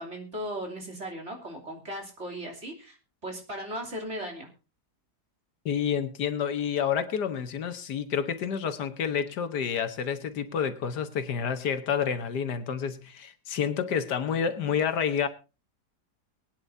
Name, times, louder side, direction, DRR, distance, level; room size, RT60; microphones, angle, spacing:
voice 1, 0.0-3.0 3.2-4.5, equal, 40° right, 0 dB, 3.4 m, -37 dB
voice 2, 5.7-15.3, left 7 dB, 80° left, 9 dB, 1.7 m, -29 dB
22.5 x 9.8 x 2.7 m, 0.31 s
omnidirectional pair, 1.7 m